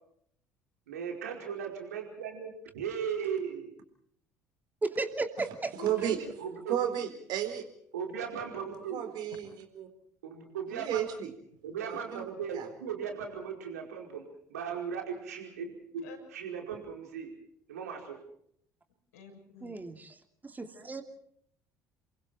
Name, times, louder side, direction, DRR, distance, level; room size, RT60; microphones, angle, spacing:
voice 1, 0.9-3.7 6.4-6.8 7.9-9.0 10.2-11.0 11.6-17.3 17.7-18.2, right 7 dB, 75° right, 2 dB, 4.9 m, -37 dB
voice 2, 4.8-5.7 19.6-20.1 20.4-21.0, right 3 dB, 20° right, 6 dB, 2.8 m, -34 dB
voice 3, 5.8-6.2 6.7-7.6 8.9-9.9 10.7-11.3 11.9-12.2 12.5-12.7, right 10 dB, 55° right, 8 dB, 4.1 m, -33 dB
voice 4, 19.1-20.0 21.0-21.1, left 4 dB, 75° left, 3 dB, 6.7 m, -48 dB
29.0 x 23.5 x 4.4 m, 0.66 s
figure-of-eight pair, 60°, 9 cm